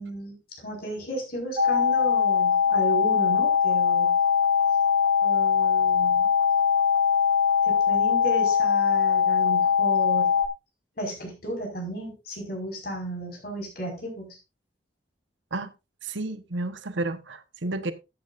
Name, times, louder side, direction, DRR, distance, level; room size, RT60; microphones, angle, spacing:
voice 1, 0.0-4.1 5.2-6.3 7.6-10.4 11.0-14.4, right 1 dB, 50° left, 5.2 m, -34 dB
sound 1, 1.6-10.5, left 7 dB, 30° right, 0.7 m, -21 dB
voice 2, 16.0-17.9, right 2 dB, 85° right, 1.2 m, -31 dB
14.5 x 8.9 x 2.6 m
head